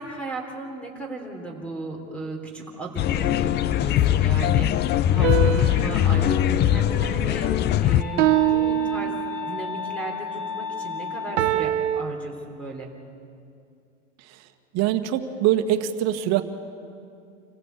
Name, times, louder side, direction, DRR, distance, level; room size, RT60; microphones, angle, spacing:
voice 1, 0.0-12.9, right 2 dB, 5° left, 1 dB, 3.3 m, -36 dB
sound 1, 3.0-8.0, left 12 dB, 30° left, 0.5 m, -21 dB
sound 2, 5.2-7.6 8.2-9.7 11.4-12.0, right 13 dB, 65° right, 1.1 m, -25 dB
sound 3, 8.0-11.6, left 6 dB, 50° left, 2.4 m, -33 dB
voice 2, 14.7-16.4, right 12 dB, 45° right, 8 dB, 1.7 m, -23 dB
27.0 x 15.5 x 8.2 m, 2.5 s
hypercardioid pair, 115°, 38 cm